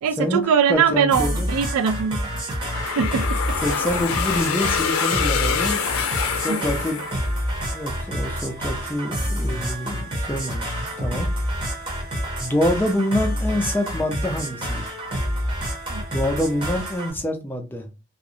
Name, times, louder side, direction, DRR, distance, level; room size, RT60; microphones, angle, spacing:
voice 1, 0.0-2.3 3.0-3.3 6.5-6.7 15.9-16.1, right 7 dB, 90° right, 0.3 m, -21 dB
voice 2, 0.7-1.5 3.6-5.8 6.3-7.0 7.7-11.3 12.4-15.0 16.1-17.9, left 1 dB, 10° left, 0.4 m, -26 dB
sound 1, 1.1-17.1, equal, 25° right, 0.7 m, -28 dB
sound 2, 2.7-7.6, left 7 dB, 85° left, 0.5 m, -26 dB
2.4 x 2.0 x 2.7 m
head